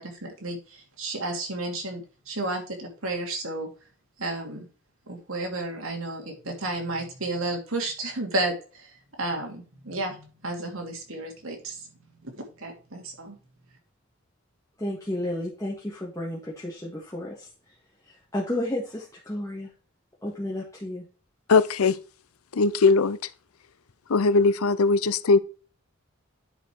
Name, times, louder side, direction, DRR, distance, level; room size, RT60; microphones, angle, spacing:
voice 1, 0.0-3.7 4.2-4.7 5.1-8.9 9.2-11.9 12.2-13.4, right 2 dB, 75° right, 2.5 m, -32 dB
voice 2, 14.8-17.5 18.1-19.7 20.2-21.1, left 1 dB, 15° left, 1.8 m, -32 dB
voice 3, 21.5-21.9 22.5-23.2 24.1-25.4, left 4 dB, 90° left, 0.6 m, -20 dB
9.9 x 5.0 x 4.6 m
head